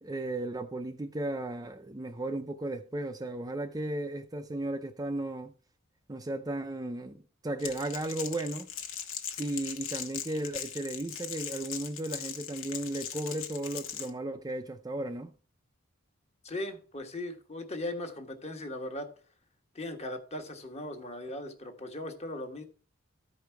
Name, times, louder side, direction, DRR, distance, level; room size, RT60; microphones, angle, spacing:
voice 1, 0.0-5.5 6.1-8.7 9.4-15.3, right 1 dB, 20° right, 0.5 m, -35 dB
Crackle, 7.6-14.1, left 8 dB, 80° left, 1.3 m, -40 dB
voice 2, 16.4-19.1 19.7-22.6, left 1 dB, 30° left, 1.3 m, -38 dB
13.5 x 5.1 x 4.6 m
head